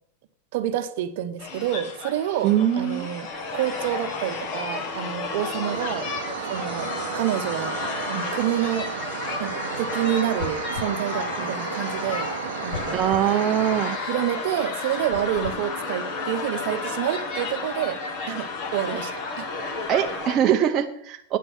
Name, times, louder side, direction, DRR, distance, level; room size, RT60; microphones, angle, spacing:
voice 1, 0.5-6.1 6.4-7.8 8.1-8.9 9.4-12.3 12.6-13.0 14.1-18.0 18.3-19.5, right 11 dB, 50° right, 10 dB, 0.9 m, -28 dB
sound 1, 1.4-20.4, left 4 dB, 35° left, 1.5 m, -32 dB
voice 2, 2.4-3.1 12.9-14.0 19.9-21.4, right 10 dB, 25° right, 3 dB, 0.6 m, -22 dB
sound 2, 5.7-14.0, right 11 dB, 80° right, 0.5 m, -34 dB
sound 3, 10.4-11.0 12.7-13.3 15.1-15.6, left 7 dB, 70° left, 1.1 m, -36 dB
9.1 x 7.6 x 6.2 m, 0.73 s
supercardioid pair, 165°, 0 cm